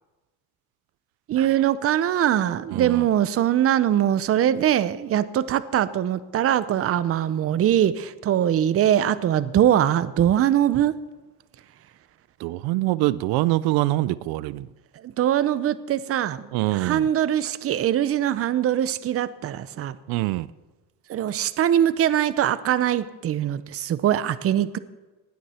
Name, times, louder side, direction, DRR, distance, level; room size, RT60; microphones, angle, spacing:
voice 1, 1.3-10.9 15.0-20.0 21.1-24.8, right 11 dB, 40° right, 0.7 m, -22 dB
voice 2, 2.7-3.1 12.4-14.7 16.5-17.1 20.1-20.5, right 17 dB, 85° right, 0.5 m, -24 dB
19.0 x 13.0 x 4.4 m
cardioid pair, 140°, 37 cm